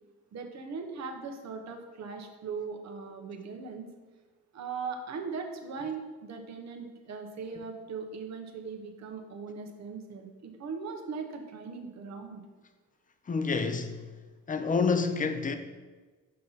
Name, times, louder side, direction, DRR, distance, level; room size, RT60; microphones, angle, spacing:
voice 1, 0.3-3.9 4.5-12.4, right 5 dB, 60° right, 1.1 m, -39 dB
voice 2, 13.2-14.2 14.5-15.6, left 4 dB, 25° left, 0.6 m, -28 dB
5.6 x 5.4 x 4.1 m
cardioid pair, 90°, 30 cm